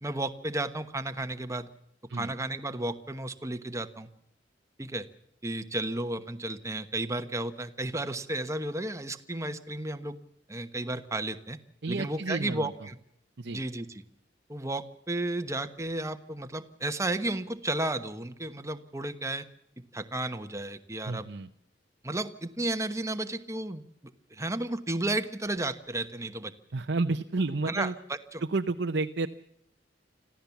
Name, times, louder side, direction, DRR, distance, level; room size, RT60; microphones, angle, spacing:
voice 1, 0.0-1.7 2.1-4.1 4.8-5.1 5.4-10.2 10.5-11.6 11.9-13.0 13.5-14.0 14.5-19.4 19.9-21.3 22.0-23.8 24.3-26.5 27.7-27.9 28.3-28.4, right 2 dB, 15° right, 8 dB, 1.2 m, -33 dB
voice 2, 11.8-12.7 13.4-13.6 21.0-21.5 26.7-27.9 28.5-29.3, right 3 dB, 65° right, 6 dB, 0.8 m, -30 dB
26.0 x 15.0 x 7.2 m, 0.74 s
head